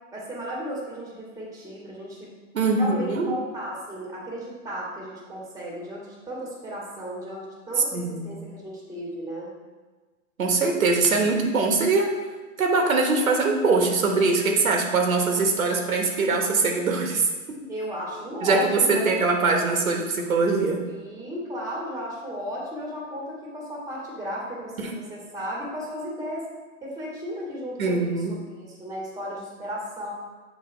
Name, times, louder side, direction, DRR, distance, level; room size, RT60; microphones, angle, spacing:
voice 1, 0.1-2.3 2.7-9.5 17.7-19.2 20.9-26.4 26.8-30.1, equal, 10° right, -3 dB, 1.5 m, -34 dB
voice 2, 2.5-3.3 7.9-8.3 10.4-12.1 12.6-17.6 18.4-20.9 24.8-24.9 27.8-28.3, right 3 dB, 90° right, 2 dB, 1.2 m, -22 dB
6.9 x 3.2 x 4.4 m, 1.3 s
hypercardioid pair, 135°, 40 cm